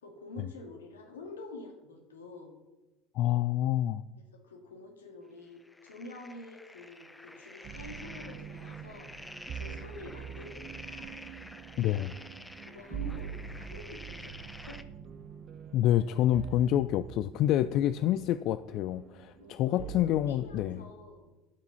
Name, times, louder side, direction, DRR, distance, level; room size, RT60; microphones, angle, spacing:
voice 1, 0.0-2.5 4.2-9.1 9.5-11.2 12.6-14.8 19.4-21.3, left 2 dB, 85° left, 3 dB, 1.9 m, -48 dB
voice 2, 3.2-4.0 11.8-12.2 15.7-20.8, left 12 dB, 55° left, 14 dB, 0.3 m, -27 dB
sound 1, 5.6-14.8, left 1 dB, 10° left, 0.7 m, -49 dB
sound 2, 7.6-20.7, right 9 dB, 45° right, 0.6 m, -45 dB
13.0 x 5.9 x 5.6 m, 1.1 s
hypercardioid pair, 70°, 0 cm